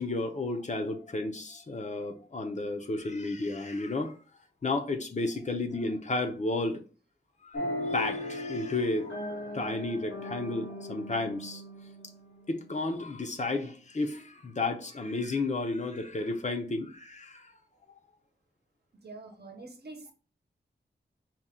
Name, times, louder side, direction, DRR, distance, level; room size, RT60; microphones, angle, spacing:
voice 1, 0.0-4.2 4.6-6.8 7.4-7.6 7.9-9.2 9.5-11.6 12.5-17.5, left 2 dB, 40° left, 0.6 m, -32 dB
sound 1, 7.5-13.0, left 1 dB, 75° left, 0.8 m, -38 dB
voice 2, 19.0-20.1, right 3 dB, 60° right, 0.9 m, -45 dB
4.3 x 2.3 x 3.6 m
wide cardioid pair, 95°, 19 cm